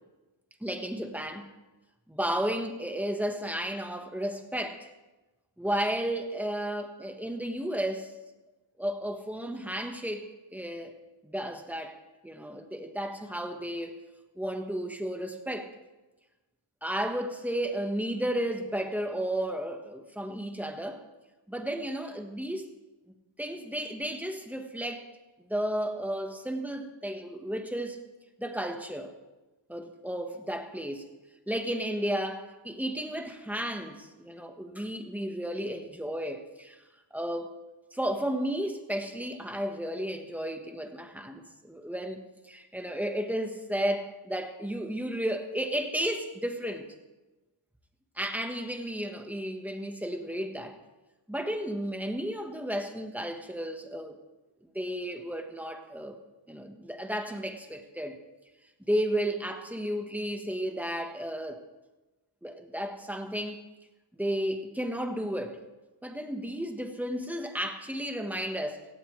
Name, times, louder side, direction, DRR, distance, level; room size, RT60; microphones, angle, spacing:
voice 1, 0.6-1.5 2.1-4.9 5.6-8.1 8.8-10.9 11.2-12.0 12.2-14.0 14.4-15.7 16.8-21.0 21.5-22.7 23.4-25.1 25.4-28.0 28.4-29.1 29.7-31.1 31.5-36.8 37.1-37.5 37.9-46.9 48.2-50.8 51.3-54.2 54.7-56.2 56.5-58.2 58.9-61.6 62.4-63.6 64.2-65.6 66.0-68.9, equal, 5° right, 1.3 m, -33 dB
17.5 x 16.5 x 3.3 m
wide cardioid pair, 130°, 48 cm